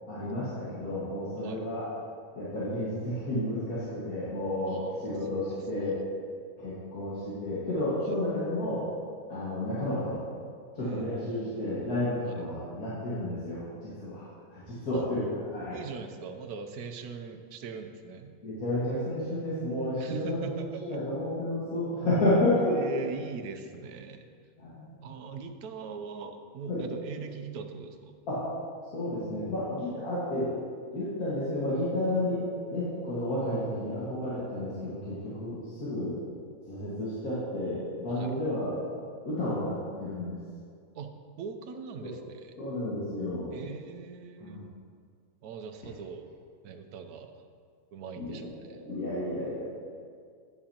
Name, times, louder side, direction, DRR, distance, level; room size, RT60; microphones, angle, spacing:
voice 1, 0.1-1.9 2.3-6.0 6.6-8.8 9.3-10.2 10.7-15.8 18.4-20.5 20.8-22.8 24.6-24.9 26.7-26.8 28.3-28.4 28.9-30.5 30.9-32.4 32.7-36.2 36.7-38.8 39.2-40.4 42.0-42.1 42.6-43.5 44.4-44.7 48.2-49.6, left 1 dB, 75° left, -10 dB, 2.2 m, -31 dB
voice 2, 4.7-5.4 8.0-8.2 10.8-11.8 12.3-12.4 14.9-15.1 15.7-18.3 20.0-21.0 22.6-24.3 25.0-28.1 38.1-38.3 41.0-41.1 41.4-42.5 43.5-44.6 45.4-46.3 46.6-47.3 47.9-48.8, right 5 dB, 85° right, 6 dB, 1.2 m, -41 dB
9.4 x 8.8 x 2.9 m, 2.1 s
omnidirectional pair, 1.6 m